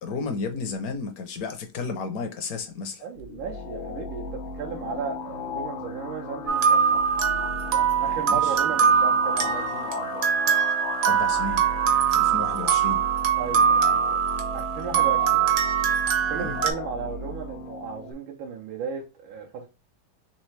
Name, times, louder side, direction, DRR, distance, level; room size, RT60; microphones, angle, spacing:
voice 1, 0.0-3.1 8.3-8.6 11.0-11.6 12.1-13.0 16.4-16.6, left 4 dB, 60° left, 1.0 m, -32 dB
voice 2, 3.0-7.0 7.7-10.3 13.4-14.2 14.5-15.4 16.3-19.7, right 6 dB, 85° right, 1.5 m, -35 dB
sound 1, 3.2-18.1, left 4 dB, 85° left, 1.4 m, -36 dB
sound 2, 6.5-16.7, right 8 dB, 55° right, 1.0 m, -22 dB
4.3 x 3.1 x 3.1 m
omnidirectional pair, 2.1 m